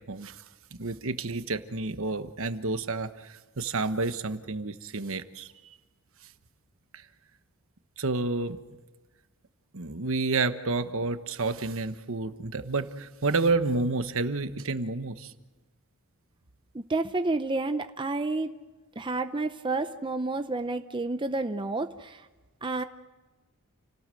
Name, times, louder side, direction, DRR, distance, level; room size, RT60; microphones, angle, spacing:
voice 1, 0.8-5.7 8.0-8.6 9.7-15.3, right 3 dB, 65° right, 10 dB, 1.2 m, -30 dB
voice 2, 16.7-18.5 19.0-22.3 22.6-22.8, right 2 dB, 20° right, 8 dB, 0.7 m, -30 dB
29.5 x 18.5 x 7.7 m, 1.2 s
head